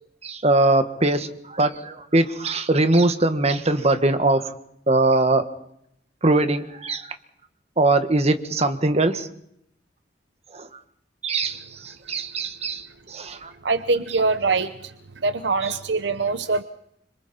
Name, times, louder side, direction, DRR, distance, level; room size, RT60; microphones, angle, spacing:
voice 1, 0.2-4.5 4.9-5.4 6.2-7.1 7.8-9.3 10.5-10.7 11.2-13.5 15.6-15.8, right 2 dB, 35° right, 8 dB, 1.6 m, -21 dB
voice 2, 13.6-14.9 15.2-16.6, right 3 dB, 70° right, 11 dB, 0.8 m, -23 dB
26.5 x 26.0 x 4.4 m, 0.74 s
head